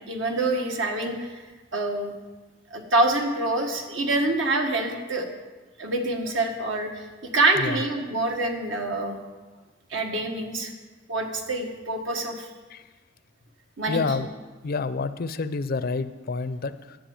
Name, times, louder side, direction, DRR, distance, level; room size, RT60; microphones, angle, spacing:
voice 1, 0.0-1.4 1.7-2.1 2.7-5.3 5.8-9.2 9.9-10.7 11.1-12.5 13.8-14.0, right 2 dB, 75° right, 3 dB, 1.5 m, -26 dB
voice 2, 13.9-14.3 14.6-17.0, left 4 dB, 50° left, 13 dB, 0.5 m, -28 dB
10.5 x 7.5 x 7.0 m, 1.3 s
head